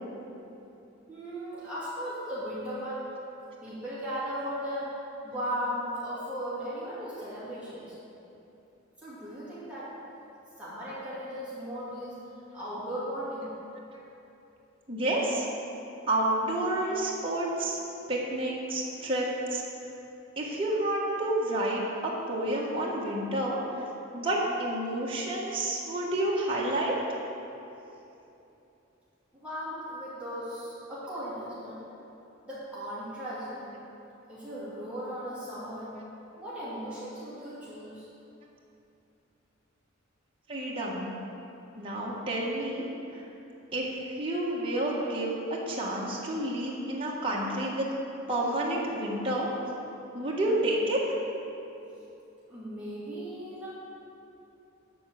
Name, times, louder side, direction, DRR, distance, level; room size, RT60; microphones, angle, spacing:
voice 1, 1.1-3.0 3.6-4.9 5.2-7.9 9.0-9.9 10.6-12.2 12.5-13.5 29.3-31.8 32.4-33.7 34.3-36.0 36.4-38.1 52.5-53.7, equal, 5° right, -11 dB, 2.5 m, -37 dB
voice 2, 14.9-15.5 16.1-17.8 18.1-19.6 20.4-23.8 24.1-26.9 40.5-41.1 41.8-42.8 43.1-43.3 43.7-47.9 48.3-49.5 50.1-51.0, right 1 dB, 25° right, -5 dB, 1.5 m, -29 dB
12.0 x 4.5 x 7.6 m, 2.9 s
head